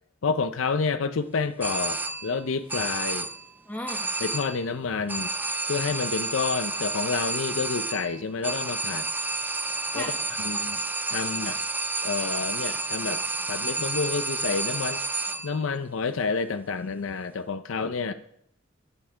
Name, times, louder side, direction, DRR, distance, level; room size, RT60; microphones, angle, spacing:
voice 1, 0.2-3.3 4.2-5.3 5.7-9.1 9.9-10.1 10.4-10.8 11.1-11.6 12.0-13.2 13.5-15.0 15.4-18.1, left 4 dB, 75° left, 12 dB, 0.5 m, -29 dB
sound 1, 1.6-2.4 2.7-3.5 3.9-4.7 5.1-15.6, right 3 dB, 10° right, 0.4 m, -30 dB
voice 2, 3.7-4.1 9.9-10.5 11.1-11.5 18.1-18.2, left 1 dB, 10° left, 1 dB, 1.1 m, -38 dB
11.0 x 8.7 x 4.5 m, 0.71 s
head